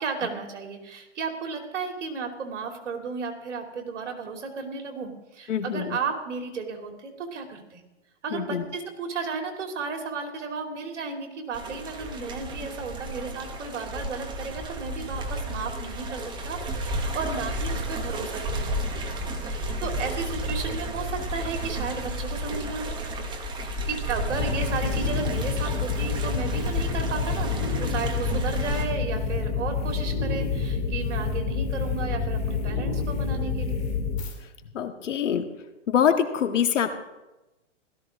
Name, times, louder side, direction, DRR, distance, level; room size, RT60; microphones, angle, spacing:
voice 1, 0.0-7.8 8.2-18.8 19.1-23.0 23.8-33.8, right 4 dB, 70° right, 3 dB, 3.1 m, -34 dB
voice 2, 5.5-6.0 8.3-8.6 34.6-35.5 35.9-36.9, left 8 dB, 75° left, 6 dB, 1.9 m, -24 dB
sound 1, 11.5-28.8, right 1 dB, 10° right, 1.2 m, -32 dB
sound 2, 24.3-34.3, left 5 dB, 20° left, 2.5 m, -28 dB
16.5 x 13.5 x 3.7 m, 1.0 s
hypercardioid pair, 150°, 37 cm